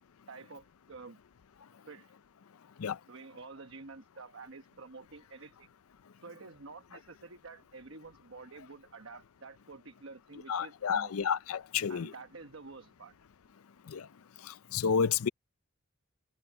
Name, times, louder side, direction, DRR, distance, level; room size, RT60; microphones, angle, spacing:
voice 1, 0.3-1.2 1.8-2.1 3.1-5.7 6.2-11.3 11.9-13.1, right 3 dB, 65° right, 1.1 m, -49 dB
voice 2, 10.5-12.1 13.9-14.1 14.4-15.3, left 6 dB, 85° left, 0.5 m, -30 dB
head